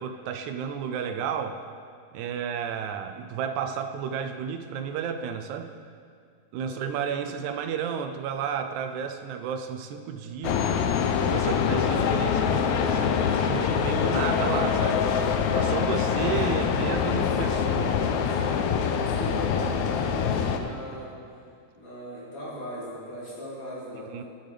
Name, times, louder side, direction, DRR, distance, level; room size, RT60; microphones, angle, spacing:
voice 1, 0.0-1.6 2.1-5.7 6.5-10.7 11.1-15.1 15.5-18.0 24.1-24.2, right 7 dB, 80° right, 7 dB, 1.9 m, -32 dB
voice 2, 6.6-7.3 16.0-17.6 18.0-21.1 21.8-24.1, equal, 50° left, -8 dB, 3.9 m, -39 dB
sound 1, 10.4-20.6, left 7 dB, 80° left, 2.0 m, -24 dB
13.5 x 10.0 x 3.4 m, 2.2 s
omnidirectional pair, 3.4 m